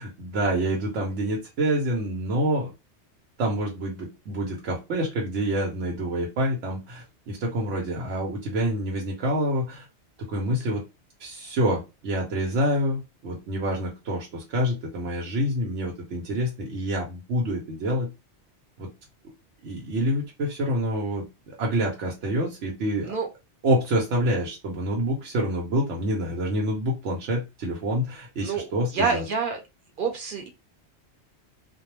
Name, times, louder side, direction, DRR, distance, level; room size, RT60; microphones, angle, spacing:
voice 1, 0.0-2.7 3.4-9.8 10.3-10.8 11.2-18.1 18.8-18.9 19.6-23.1 23.6-29.2, equal, 85° right, -1 dB, 1.1 m, -27 dB
voice 2, 28.9-29.6 30.0-30.5, right 5 dB, 50° right, 3 dB, 0.9 m, -27 dB
2.3 x 2.1 x 3.0 m, 0.25 s
omnidirectional pair, 1.2 m